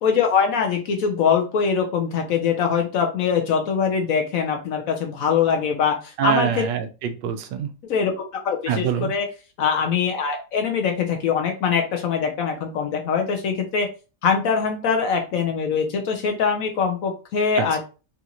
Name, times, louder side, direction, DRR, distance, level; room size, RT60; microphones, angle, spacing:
voice 1, 0.0-6.7 7.8-9.3 9.6-13.9 14.2-17.8, left 6 dB, 65° left, 3 dB, 0.9 m, -23 dB
voice 2, 6.2-7.7 8.7-9.1 17.6-17.8, right 8 dB, 90° right, 8 dB, 1.2 m, -25 dB
3.9 x 2.4 x 2.8 m, 0.33 s
omnidirectional pair, 1.8 m